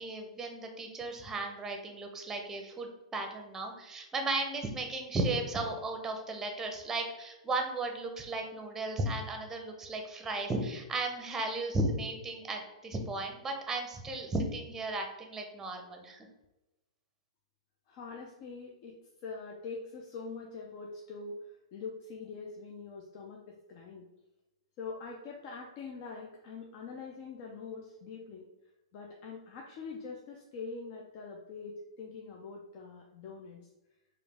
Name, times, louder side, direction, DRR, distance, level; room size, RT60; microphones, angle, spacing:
voice 1, 0.0-16.3, right 2 dB, 15° right, 4 dB, 0.7 m, -35 dB
voice 2, 17.9-19.0 19.2-24.1 24.8-28.4 28.9-33.6, left 4 dB, 40° left, -1 dB, 0.6 m, -44 dB
4.8 x 2.5 x 3.5 m, 1.0 s
figure-of-eight pair, 110°, 3 cm